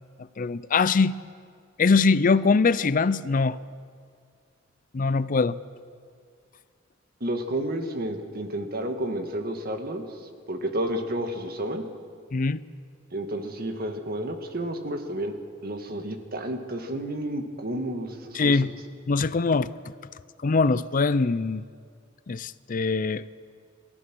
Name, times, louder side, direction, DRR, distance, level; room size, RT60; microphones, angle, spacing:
voice 1, 0.4-1.1 1.8-3.6 4.9-5.6 12.3-12.6 18.3-18.7 19.1-19.7 20.4-21.6 22.3-23.3, left 4 dB, 45° left, 16 dB, 0.5 m, -22 dB
voice 2, 7.2-10.0 10.5-11.9 13.1-18.6, right 1 dB, 50° right, 5 dB, 1.7 m, -31 dB
29.5 x 14.5 x 6.2 m, 2.1 s
head